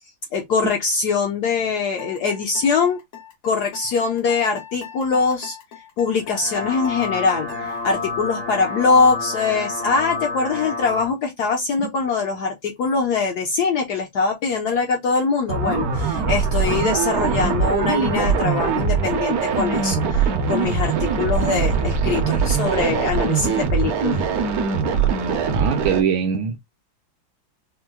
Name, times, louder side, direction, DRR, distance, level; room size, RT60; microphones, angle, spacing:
voice 1, 0.3-3.0 3.4-5.6 6.0-24.3, left 4 dB, 70° left, 1.0 m, -22 dB
sound 1, 2.0-8.1, left 8 dB, 90° left, 1.9 m, -41 dB
sound 2, 6.2-11.1, left 3 dB, 55° left, 0.4 m, -29 dB
sound 3, 15.5-26.0, right 5 dB, 60° right, 1.0 m, -22 dB
voice 2, 25.5-26.6, right 7 dB, 80° right, 1.4 m, -22 dB
4.4 x 2.0 x 2.2 m
omnidirectional pair, 2.2 m